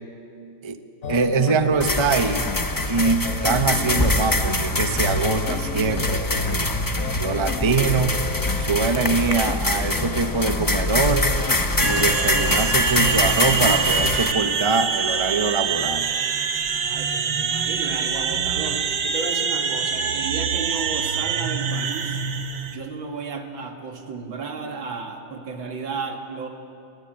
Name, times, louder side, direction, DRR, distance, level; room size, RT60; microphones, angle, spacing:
sound 1, 1.0-14.2, left 3 dB, 50° left, 1.4 m, -31 dB
voice 1, 1.1-2.4 2.9-6.7 7.2-8.2 8.6-11.3 11.8-16.1, right 4 dB, 20° right, 8 dB, 0.9 m, -23 dB
sound 2, 1.8-14.3, left 2 dB, 15° left, 0.7 m, -24 dB
sound 3, 11.8-22.8, right 6 dB, 65° right, 1.8 m, -25 dB
voice 2, 16.7-22.2 22.7-26.5, right 4 dB, 85° right, 4 dB, 2.9 m, -33 dB
30.0 x 22.0 x 9.0 m, 2.5 s
omnidirectional pair, 2.1 m